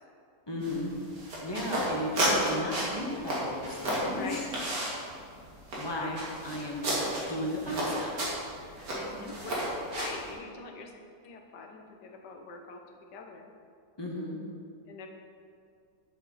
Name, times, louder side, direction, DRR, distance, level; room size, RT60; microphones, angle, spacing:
voice 1, 0.5-0.9 1.4-4.3 5.8-6.9 7.3-8.3 14.0-14.4, left 1 dB, 15° left, -2 dB, 1.3 m, -35 dB
sound 1, 0.6-10.3, right 1 dB, 85° right, 2.7 m, -33 dB
voice 2, 4.1-4.5 5.9-6.3 8.9-9.6 10.0-10.9 11.2-12.8 13.1-13.5 14.9-15.1, left 4 dB, 90° left, 3 dB, 1.6 m, -43 dB
10.5 x 7.8 x 4.1 m, 2.3 s
omnidirectional pair, 1.8 m